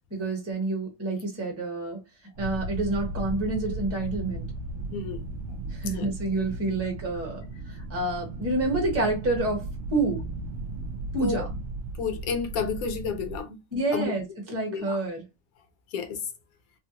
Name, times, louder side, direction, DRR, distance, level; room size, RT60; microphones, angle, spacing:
voice 1, 0.1-2.0 2.4-4.5 5.7-7.4 7.7-10.2 11.1-11.5 13.7-15.2, right 2 dB, 10° right, 0.8 m, -28 dB
sound 1, 2.3-13.4, right 2 dB, 65° right, 0.8 m, -36 dB
voice 2, 4.9-5.2 5.9-6.1 11.2-11.4 12.0-13.6 13.9-14.0 14.7-15.0 15.9-16.2, left 5 dB, 70° left, 1.1 m, -30 dB
3.5 x 2.1 x 2.8 m
omnidirectional pair, 1.7 m